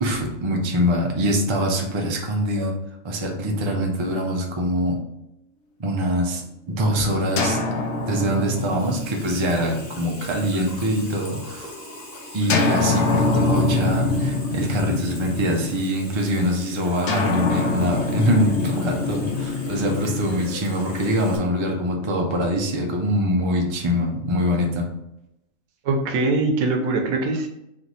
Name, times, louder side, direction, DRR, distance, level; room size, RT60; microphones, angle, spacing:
voice 1, 0.0-2.7 3.0-5.1 5.8-7.7 8.0-11.7 12.3-24.9, equal, 40° right, 1 dB, 0.4 m, -24 dB
sound 1, 7.4-11.2 12.5-16.1 17.1-21.2, left 3 dB, 65° left, 0.8 m, -25 dB
Water tap faucet / Sink (filling or washing), 7.7-21.4, left 1 dB, 50° left, 1.2 m, -42 dB
voice 2, 25.8-27.5, right 3 dB, 85° right, 4 dB, 1.1 m, -22 dB
3.3 x 3.1 x 3.9 m, 0.85 s
omnidirectional pair, 1.4 m